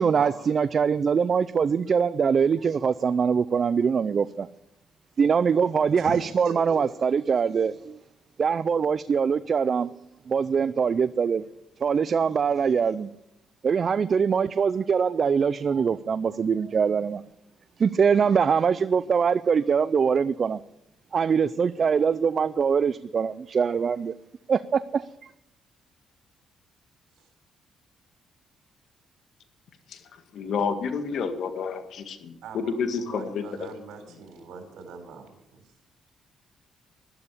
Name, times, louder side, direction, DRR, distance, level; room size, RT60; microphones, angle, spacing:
voice 1, 0.0-4.5 5.2-8.0 8.4-9.9 10.3-11.4 11.8-13.1 13.6-17.2 17.8-20.6 21.1-24.1 24.5-25.1, right 6 dB, 45° right, 15 dB, 0.4 m, -23 dB
voice 2, 5.9-6.8 32.4-35.6, right 5 dB, 80° right, 5 dB, 3.9 m, -40 dB
voice 3, 30.3-33.7, left 5 dB, 70° left, 8 dB, 1.8 m, -30 dB
12.5 x 12.0 x 6.8 m, 0.81 s
cardioid pair, 90°, 0 cm